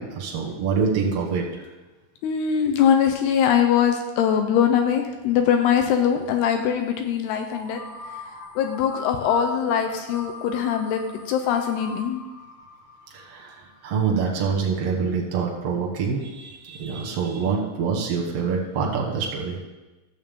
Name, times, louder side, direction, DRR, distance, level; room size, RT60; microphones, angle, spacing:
voice 1, 0.0-1.6 13.1-19.6, right 5 dB, 75° right, -1 dB, 1.4 m, -26 dB
voice 2, 2.2-7.8 8.6-12.2, left 8 dB, 80° left, 4 dB, 2.5 m, -22 dB
sound 1, 7.4-14.2, left 2 dB, 50° left, 1.5 m, -41 dB
13.0 x 7.3 x 3.6 m, 1.1 s
omnidirectional pair, 4.8 m